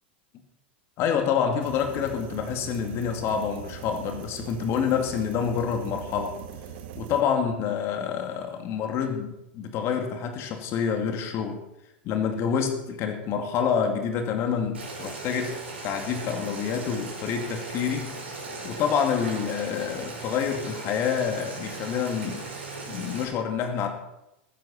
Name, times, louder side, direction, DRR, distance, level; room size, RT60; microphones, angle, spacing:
voice 1, 1.0-6.4 6.9-11.6 12.0-15.6 15.8-18.1 18.6-22.5 22.9-23.9, left 7 dB, 45° left, 4 dB, 2.3 m, -27 dB
sound 1, 1.6-7.2, right 8 dB, 60° right, 1.6 m, -41 dB
Boiling, 14.7-23.2, right 3 dB, 85° right, 5.6 m, -38 dB
15.0 x 14.0 x 4.3 m, 0.90 s
hypercardioid pair, 95°, 6 cm